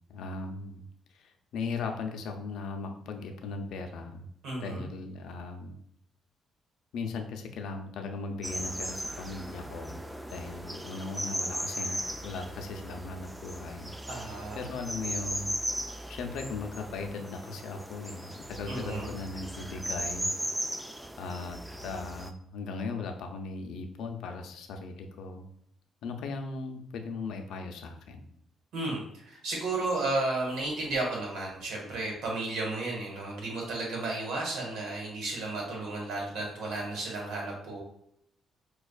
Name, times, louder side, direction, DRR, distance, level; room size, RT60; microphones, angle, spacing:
voice 1, 0.1-0.9 1.2-4.3 4.6-5.8 6.9-10.0 10.3-15.6 16.1-20.3 20.6-20.8 21.2-25.5 26.0-28.3, left 4 dB, 80° left, 4 dB, 0.5 m, -38 dB
voice 2, 4.4-4.9 14.1-14.7 18.7-19.1 28.7-37.8, right 2 dB, 85° right, -1 dB, 1.4 m, -33 dB
sound 1, 8.4-22.3, equal, 5° right, 0.3 m, -37 dB
5.0 x 2.4 x 2.3 m, 0.71 s
cardioid pair, 90°, 0 cm